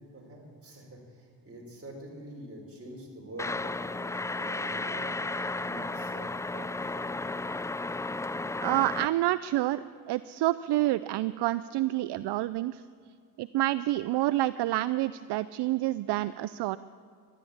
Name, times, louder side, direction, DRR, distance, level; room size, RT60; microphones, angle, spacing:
voice 1, 0.1-5.2 5.6-7.2, right 1 dB, 30° right, -1 dB, 5.3 m, -46 dB
sound 1, 3.4-9.1, left 2 dB, 10° left, 0.3 m, -33 dB
voice 2, 8.6-12.8 13.4-16.8, right 16 dB, 65° right, 16 dB, 0.5 m, -28 dB
13.5 x 11.5 x 8.7 m, 2.1 s
supercardioid pair, 60°, 43 cm